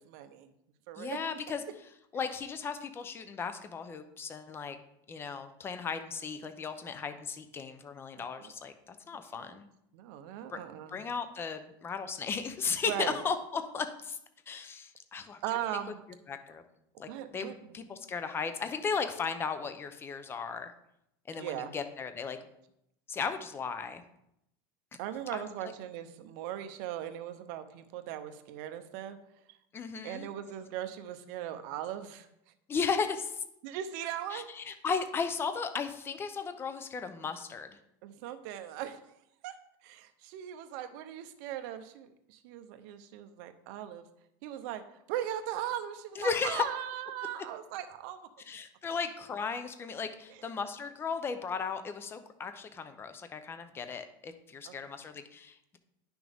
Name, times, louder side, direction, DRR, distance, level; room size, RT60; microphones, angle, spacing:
voice 1, 0.0-0.5 0.9-1.2 8.2-8.5 9.3-9.6 9.9-11.0 12.8-13.2 15.4-16.0 17.1-17.6 21.3-21.7 25.0-29.2 29.5-29.6 30.0-32.3 33.6-34.5 38.0-39.1 39.4-39.5 39.8-44.1 44.4-48.2 50.3-50.4 54.7-54.8, right 11 dB, 60° right, 9 dB, 0.8 m, -39 dB
voice 2, 1.0-1.6 2.1-4.8 5.1-9.7 10.5-10.6 10.9-14.2 14.5-15.4 16.3-16.6 17.0-20.7 21.3-22.4 23.1-24.0 25.3-25.7 29.7-30.3 32.7-33.4 34.3-37.7 46.2-46.6 48.5-55.8, left 5 dB, 20° left, 9 dB, 0.6 m, -36 dB
9.9 x 6.1 x 3.5 m, 0.80 s
supercardioid pair, 140°, 12 cm